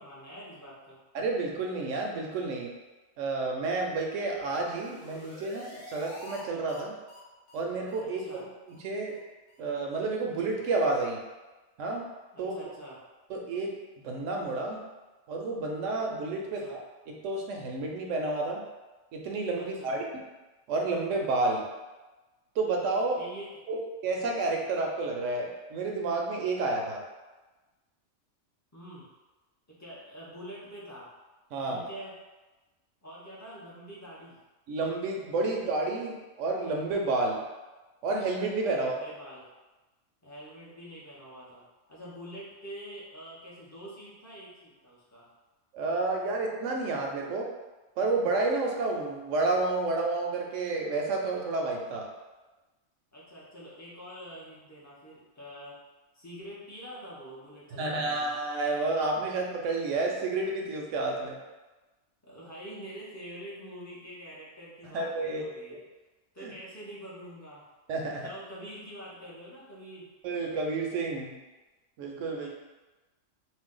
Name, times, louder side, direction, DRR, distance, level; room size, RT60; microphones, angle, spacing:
voice 1, 0.0-1.0 8.0-8.4 12.3-13.0 16.4-16.8 19.5-20.0 23.2-23.5 28.7-29.1 29.7-31.1 31.7-32.2 33.0-34.4 38.7-39.5 40.2-45.3 53.1-55.8 56.1-58.3 62.2-65.8 66.3-67.7 68.1-70.1 72.3-72.5, equal, 20° left, -8 dB, 0.5 m, -45 dB
voice 2, 1.1-2.7 3.2-7.0 7.5-9.2 9.6-11.2 11.8-12.1 12.4-12.5 13.3-13.8 14.0-14.8 15.3-16.8 17.1-18.6 19.1-20.0 20.7-21.7 22.6-23.2 23.7-27.0 31.5-31.8 34.7-37.4 38.0-39.0 45.7-47.5 48.0-52.1 57.7-61.4 64.9-65.4 66.4-66.5 67.9-68.3 70.2-71.4 72.0-72.5, right 3 dB, 75° right, 0 dB, 0.9 m, -30 dB
sound 1, 4.4-6.4 6.7-6.8 7.1-7.2 7.5-7.6 7.9-8.0 8.3-8.4 8.7-8.8 9.1-9.2 9.5-9.6, left 1 dB, 70° left, 1.0 m, -47 dB
2.6 x 2.2 x 3.6 m, 1.1 s
omnidirectional pair, 1.3 m